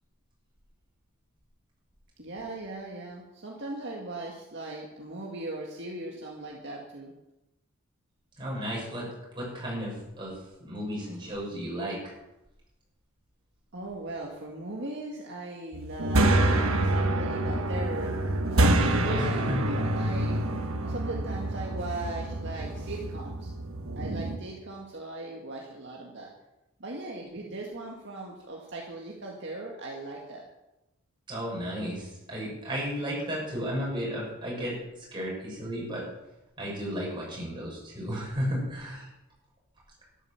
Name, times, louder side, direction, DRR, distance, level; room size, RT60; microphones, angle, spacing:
voice 1, 2.2-7.1 13.7-20.4 20.8-23.5 24.0-26.3 26.8-30.5, right 2 dB, 55° right, -2 dB, 2.0 m, -38 dB
voice 2, 8.4-9.1 9.3-10.3 10.6-12.0 18.9-19.6 31.3-34.8 35.1-36.0 36.6-39.1, equal, 20° right, -5 dB, 6.9 m, -33 dB
sound 1, 15.7-24.4, right 1 dB, 70° right, 1.3 m, -27 dB
13.0 x 11.0 x 7.2 m, 0.95 s
head